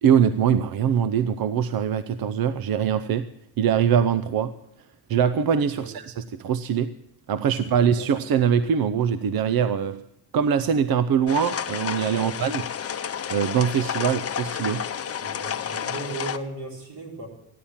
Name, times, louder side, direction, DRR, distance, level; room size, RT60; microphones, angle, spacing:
voice 1, 0.0-3.2 3.6-4.5 5.1-6.9 7.3-10.0 10.3-12.6 13.3-14.8, right 8 dB, 60° right, 13 dB, 0.7 m, -22 dB
voice 2, 7.4-8.1 12.1-12.4 15.2-17.3, right 2 dB, 85° right, 0 dB, 4.5 m, -37 dB
sound 1, 11.3-16.4, left 8 dB, 35° left, 0.7 m, -30 dB
14.5 x 10.0 x 7.1 m, 0.83 s
cardioid pair, 105°, 41 cm